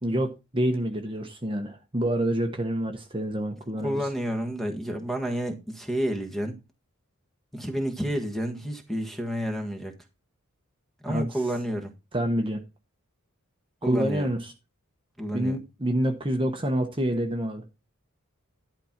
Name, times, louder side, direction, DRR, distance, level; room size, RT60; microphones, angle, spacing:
voice 1, 0.0-4.0 11.1-11.3 12.1-12.6 13.9-14.5 15.3-17.6, right 1 dB, 25° right, 1.2 m, -27 dB
voice 2, 3.8-6.6 7.5-9.9 11.0-11.9 13.8-14.3 15.2-15.6, equal, ahead, 1.5 m, -30 dB
11.5 x 4.4 x 5.9 m
head